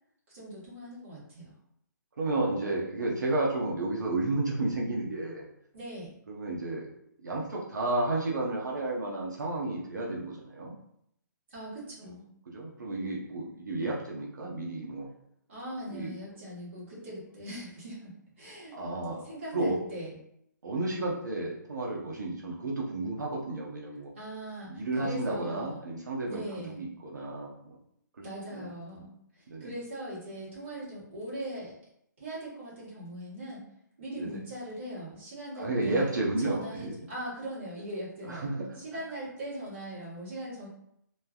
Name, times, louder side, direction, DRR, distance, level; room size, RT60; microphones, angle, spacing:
voice 1, 0.3-1.5 5.7-6.1 11.5-12.3 15.5-18.1 18.4-18.8 19.2-20.1 24.1-25.7 26.3-26.8 28.2-31.7 32.2-33.6 34.0-36.1 36.4-38.5 38.7-40.7, right 1 dB, 35° right, -9 dB, 1.3 m, -40 dB
voice 2, 2.2-5.4 6.3-6.9 7.2-10.8 12.5-15.1 15.9-16.1 18.7-19.2 19.5-19.8 20.6-24.1 24.7-27.5 28.5-28.7 29.5-29.7 34.2-34.4 35.5-36.9 38.3-38.8, right 2 dB, 65° right, -3 dB, 0.7 m, -32 dB
3.1 x 2.3 x 2.3 m, 0.74 s
hypercardioid pair, 180°, 11 cm